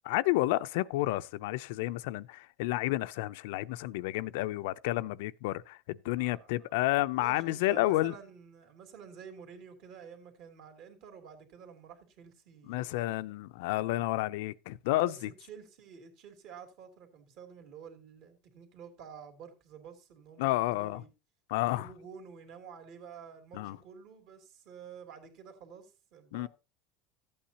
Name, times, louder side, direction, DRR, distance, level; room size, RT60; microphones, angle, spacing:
voice 1, 0.0-8.1 12.7-15.3 20.4-21.0 21.5-21.9 23.5-23.8 26.3-26.5, left 17 dB, 75° left, 0.5 m, -30 dB
voice 2, 6.2-6.7 7.1-13.1 15.0-21.1 21.6-26.5, right 7 dB, 50° right, 2.7 m, -50 dB
14.0 x 8.6 x 2.8 m
cardioid pair, 160°, 0 cm